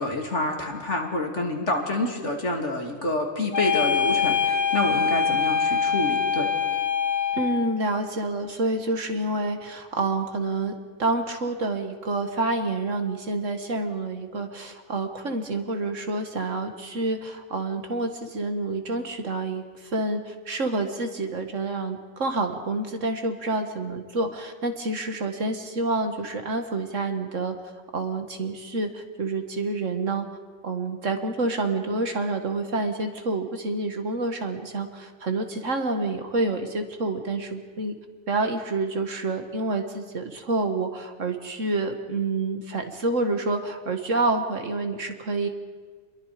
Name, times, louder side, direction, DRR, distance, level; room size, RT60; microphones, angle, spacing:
voice 1, 0.0-6.5, left 2 dB, 60° left, 1 dB, 3.2 m, -27 dB
sound 1, 3.5-7.7, left 6 dB, 35° left, 1.2 m, -24 dB
voice 2, 7.3-27.5 27.9-30.3 30.6-38.0 38.3-45.5, right 2 dB, 65° right, 6 dB, 2.1 m, -28 dB
28.5 x 22.0 x 5.1 m, 1.5 s
omnidirectional pair, 1.4 m